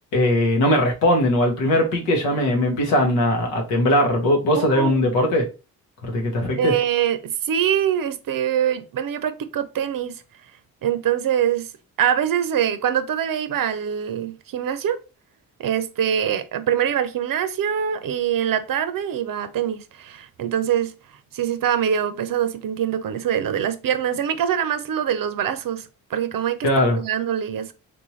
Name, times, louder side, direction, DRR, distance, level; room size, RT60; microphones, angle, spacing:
voice 1, 0.1-5.4 6.0-6.7 26.6-27.0, left 1 dB, 85° left, 1.1 m, -20 dB
voice 2, 4.5-5.1 6.6-10.2 10.8-11.7 12.0-15.0 15.6-20.9 21.3-27.7, right 9 dB, 55° right, 0.6 m, -24 dB
3.3 x 2.6 x 3.1 m
hypercardioid pair, 45°, 42 cm